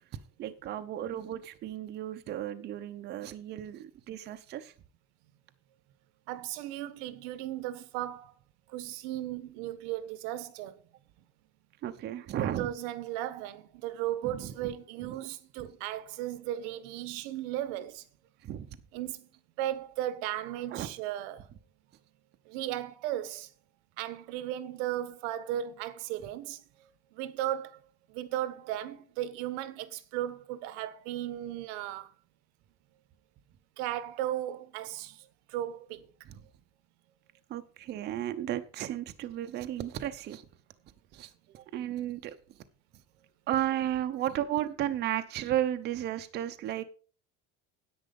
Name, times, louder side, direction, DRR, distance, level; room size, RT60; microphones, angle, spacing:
voice 1, 0.4-4.7 11.8-12.7 14.2-14.7 18.4-18.7 20.7-20.9 36.3-36.4 37.5-40.4 41.1-42.4 43.5-46.8, right 12 dB, 35° right, 0.8 m, -34 dB
voice 2, 6.3-8.3 8.7-10.8 12.4-18.0 18.9-19.3 19.6-21.5 22.5-23.5 24.0-26.6 27.1-27.8 28.1-32.1 33.8-36.1, right 13 dB, 90° right, 1.3 m, -36 dB
10.0 x 8.8 x 5.3 m
cardioid pair, 170°, 32 cm